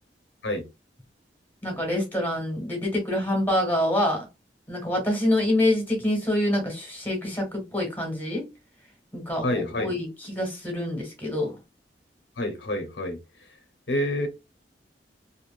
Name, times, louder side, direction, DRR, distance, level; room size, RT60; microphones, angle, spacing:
voice 1, 1.6-4.2 4.7-8.5 9.1-11.5, left 1 dB, 10° left, 1.3 m, -26 dB
voice 2, 9.4-9.9 12.4-13.2 13.9-14.3, left 1 dB, 85° left, 0.8 m, -27 dB
3.0 x 2.6 x 2.4 m
head